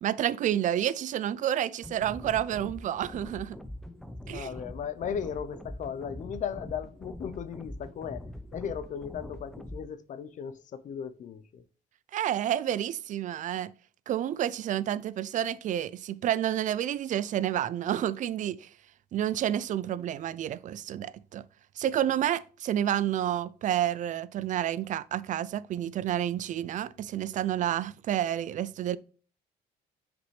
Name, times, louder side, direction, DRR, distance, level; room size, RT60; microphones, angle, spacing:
voice 1, 0.0-3.6 4.3-4.5 12.1-13.7 14.1-18.7 19.1-21.4 21.8-29.0, right 11 dB, 50° right, 0.4 m, -29 dB
sound 1, 1.8-9.8, left 1 dB, ahead, 0.6 m, -43 dB
voice 2, 4.3-8.2 8.5-11.6, left 7 dB, 50° left, 0.6 m, -36 dB
6.4 x 5.0 x 3.2 m
cardioid pair, 110°, 17 cm